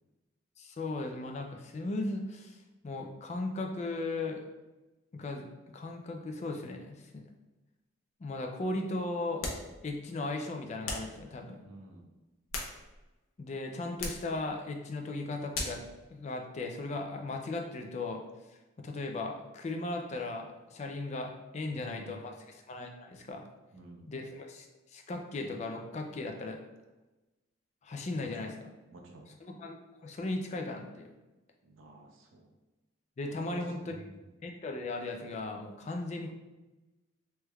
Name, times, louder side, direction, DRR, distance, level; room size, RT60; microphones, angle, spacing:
voice 1, 0.6-2.6 2.8-4.4 5.1-5.5 5.7-7.2 8.2-9.5 9.8-11.6 13.4-15.8 16.1-18.2 18.8-23.4 24.1-26.6 27.8-28.5 29.4-29.8 30.0-31.1 33.2-34.0 34.4-36.3, left 2 dB, 35° left, 3 dB, 0.3 m, -37 dB
sound 1, 9.4-9.7 10.8-11.2 12.2-13.1 14.0-14.3 15.5-15.9, left 2 dB, 85° left, 0.6 m, -37 dB
voice 2, 11.6-12.1 21.7-22.2 23.7-24.1 28.2-28.5 28.9-29.3 31.6-32.5 33.5-34.3, right 1 dB, 75° right, 1 dB, 0.6 m, -50 dB
3.3 x 3.1 x 2.2 m, 1.1 s
head